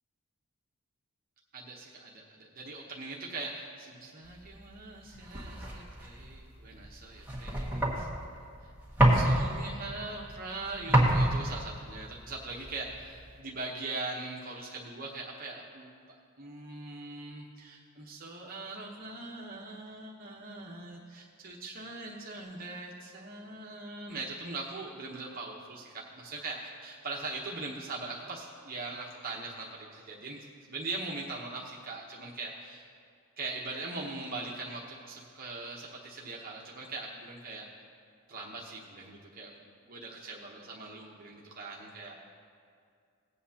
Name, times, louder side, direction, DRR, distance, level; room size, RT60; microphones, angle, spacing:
voice 1, 1.5-8.1 8.6-8.7 9.1-15.9 16.4-32.9 33.4-37.7 38.3-39.5 39.9-42.2, right 3 dB, 40° right, -2 dB, 1.0 m, -41 dB
sound 1, 4.4-13.4, right 1 dB, 10° right, 1.8 m, -30 dB
18.0 x 8.4 x 2.8 m, 2.3 s
head